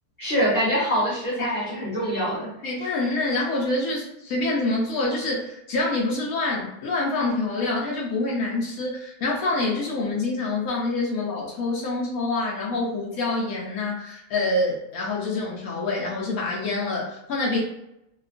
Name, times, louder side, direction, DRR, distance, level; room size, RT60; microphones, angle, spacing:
voice 1, 0.2-2.5, equal, 40° left, -9 dB, 0.9 m, -24 dB
voice 2, 2.6-17.6, left 2 dB, 70° left, -3 dB, 0.8 m, -26 dB
2.8 x 2.3 x 2.4 m, 0.82 s
omnidirectional pair, 2.0 m